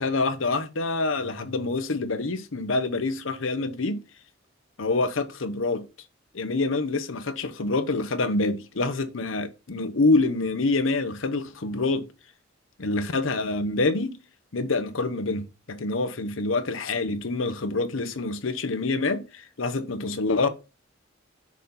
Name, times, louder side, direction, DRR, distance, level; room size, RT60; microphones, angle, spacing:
voice 1, 0.0-4.0 4.8-5.9 6.3-12.1 12.8-14.1 14.5-20.5, left 3 dB, 85° left, 0.9 m, -26 dB
6.4 x 4.2 x 5.4 m
head